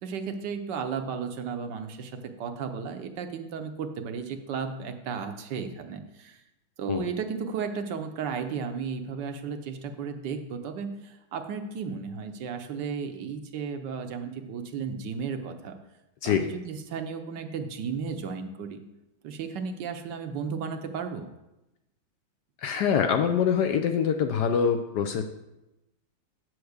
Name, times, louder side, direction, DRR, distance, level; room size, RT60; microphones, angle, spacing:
voice 1, 0.0-6.4 6.8-15.8 16.2-18.8 19.2-21.3, right 6 dB, 70° right, 7 dB, 1.3 m, -34 dB
voice 2, 22.6-25.2, left 7 dB, 70° left, 7 dB, 1.0 m, -24 dB
8.7 x 4.7 x 6.4 m, 0.95 s
omnidirectional pair, 2.1 m